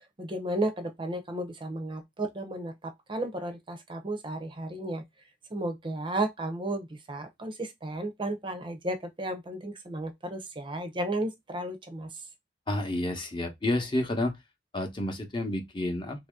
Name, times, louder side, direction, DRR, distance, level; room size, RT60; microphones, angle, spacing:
voice 1, 0.2-5.0 5.5-12.1, right 1 dB, 25° right, 0.6 m, -33 dB
voice 2, 12.7-14.4 14.7-16.3, left 1 dB, 25° left, 0.8 m, -30 dB
3.0 x 2.7 x 3.5 m
head